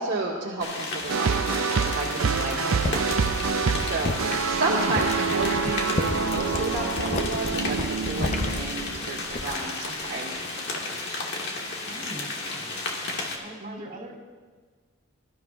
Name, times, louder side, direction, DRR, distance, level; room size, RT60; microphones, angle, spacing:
voice 1, 0.0-3.0 3.8-10.6 11.1-11.2 13.6-13.8, right 2 dB, 60° right, -7 dB, 1.7 m, -32 dB
sound 1, 0.6-13.4, left 2 dB, 55° left, 1.6 m, -33 dB
sound 2, 1.1-9.3, right 5 dB, 75° right, 0.5 m, -27 dB
sound 3, 2.8-9.7 10.0-10.4, left 2 dB, 35° left, 0.7 m, -32 dB
voice 2, 11.8-12.9 13.4-14.2, right 1 dB, 45° right, -4 dB, 2.7 m, -42 dB
22.0 x 12.5 x 2.4 m, 1.5 s
head